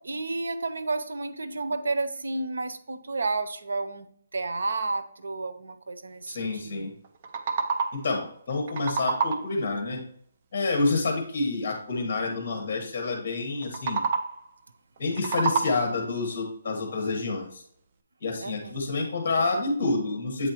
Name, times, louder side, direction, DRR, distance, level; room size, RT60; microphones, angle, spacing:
voice 1, 0.0-6.9 18.4-18.8, right 3 dB, 85° right, 10 dB, 0.7 m, -31 dB
voice 2, 6.3-6.9 7.9-10.0 10.5-14.0 15.0-17.6 18.2-20.5, left 3 dB, 35° left, 2 dB, 1.3 m, -28 dB
sound 1, 7.0-8.2 8.5-9.6 13.6-14.5 15.0-16.1, right 5 dB, 30° right, 0.5 m, -29 dB
8.1 x 4.2 x 2.9 m, 0.63 s
hypercardioid pair, 170°, 0 cm